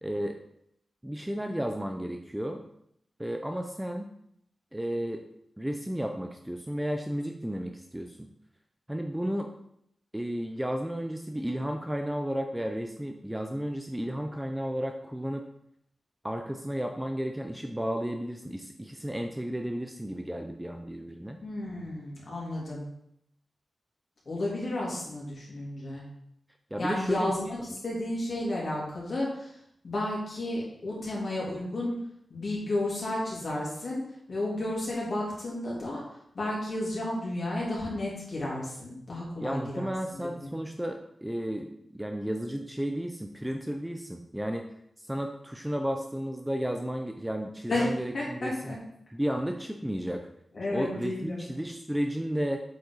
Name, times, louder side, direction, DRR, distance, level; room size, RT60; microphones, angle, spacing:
voice 1, 0.0-0.4 1.0-2.6 3.2-4.1 4.7-5.2 5.6-8.3 8.9-9.5 10.1-15.4 16.2-21.4 26.7-27.5 39.4-44.7 45.0-48.8 49.1-50.3 50.7-52.6, equal, 5° right, 4 dB, 0.5 m, -33 dB
voice 2, 21.4-22.9 24.2-26.0 26.8-27.6 27.8-29.6 29.8-32.0 32.3-34.0 34.3-36.0 36.3-40.5 47.7-47.9 48.1-48.8 50.5-51.5, left 1 dB, 45° left, -5 dB, 3.2 m, -32 dB
8.2 x 5.3 x 4.0 m, 0.73 s
wide cardioid pair, 170°, 0 cm